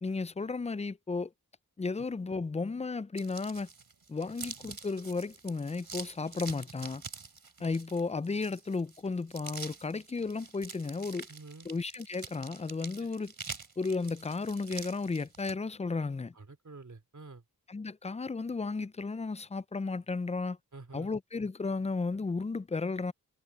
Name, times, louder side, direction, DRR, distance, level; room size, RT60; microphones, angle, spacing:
voice 1, 0.0-1.3 1.8-3.7 4.1-7.0 7.6-11.3 11.6-13.3 13.8-16.3 17.7-20.6 20.9-23.1, left 4 dB, 20° left, 0.4 m, -34 dB
sound 1, 3.2-15.5, right 4 dB, 70° right, 3.4 m, -46 dB
voice 2, 11.3-11.7 13.0-13.2 16.3-17.4 20.7-21.1, right 3 dB, 50° right, 3.1 m, -49 dB
wide cardioid pair, 65°, 37 cm